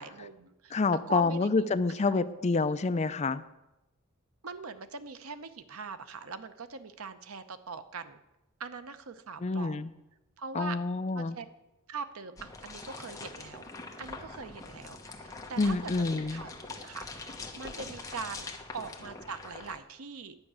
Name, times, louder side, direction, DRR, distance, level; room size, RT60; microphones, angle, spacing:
voice 1, 0.0-0.8 1.1-1.7 2.1-2.2 4.4-8.2 8.6-9.9 10.4-10.8 11.1-11.5 11.9-13.6 14.0-16.1 16.3-17.2 17.6-20.4, right 5 dB, 90° right, 11 dB, 0.8 m, -42 dB
voice 2, 0.7-3.4 9.4-9.9 10.5-11.4 15.6-16.4, left 3 dB, 30° left, 13 dB, 0.4 m, -28 dB
sound 1, 12.4-19.8, left 3 dB, 15° left, 1.0 m, -43 dB
10.5 x 5.9 x 8.8 m, 0.95 s
head